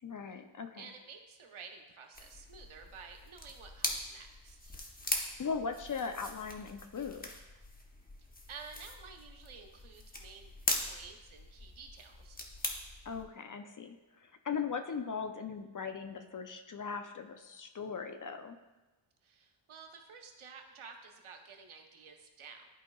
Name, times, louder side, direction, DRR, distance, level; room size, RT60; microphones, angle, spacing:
voice 1, 0.0-0.9 5.4-7.2 13.1-18.6, left 5 dB, 40° left, 7 dB, 0.5 m, -39 dB
voice 2, 0.8-4.7 8.5-10.5 10.8-12.4 19.2-22.7, right 5 dB, 80° right, 3 dB, 1.0 m, -51 dB
sound 1, 2.1-13.2, left 1 dB, 20° left, 0.9 m, -41 dB
11.5 x 4.8 x 2.3 m, 1.1 s
wide cardioid pair, 90°, 49 cm